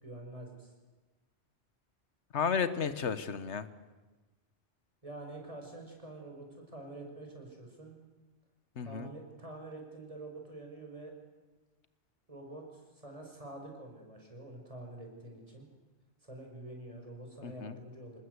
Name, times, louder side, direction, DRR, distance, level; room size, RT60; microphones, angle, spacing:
voice 1, 0.0-0.7 5.0-8.0 8.8-11.1 12.3-15.7 16.2-18.2, right 2 dB, 30° right, 1 dB, 5.6 m, -47 dB
voice 2, 2.3-3.7 8.8-9.1 17.4-17.8, left 6 dB, 85° left, 13 dB, 1.4 m, -33 dB
26.5 x 20.0 x 8.1 m, 1.2 s
omnidirectional pair, 1.1 m